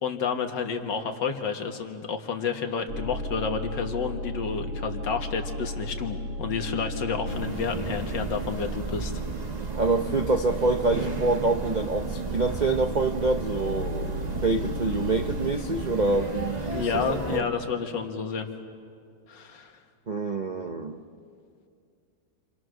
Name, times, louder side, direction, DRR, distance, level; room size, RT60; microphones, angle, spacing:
voice 1, 0.0-9.1 16.7-18.5 19.3-19.8, left 5 dB, 65° left, 5 dB, 2.2 m, -30 dB
sound 1, 2.9-15.5, right 1 dB, 50° right, 1.6 m, -36 dB
sound 2, 7.3-17.4, right 3 dB, 25° right, 1.0 m, -34 dB
voice 2, 9.7-16.8 17.1-17.5 20.1-21.0, right 3 dB, 75° right, 5 dB, 0.4 m, -26 dB
29.0 x 25.5 x 6.4 m, 2.3 s
omnidirectional pair, 2.1 m